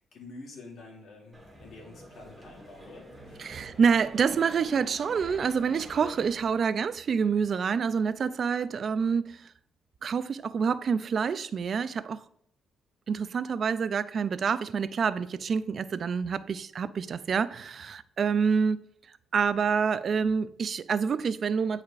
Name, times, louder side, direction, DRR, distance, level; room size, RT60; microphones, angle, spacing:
voice 1, 0.0-3.4, left 3 dB, 65° left, 2.4 m, -48 dB
sound 1, 1.3-6.3, right 1 dB, 10° right, 2.0 m, -47 dB
voice 2, 3.4-9.5 10.0-12.2 13.1-18.8 19.3-21.8, right 6 dB, 50° right, 0.3 m, -27 dB
9.4 x 4.8 x 2.5 m
cardioid pair, 90°, 0 cm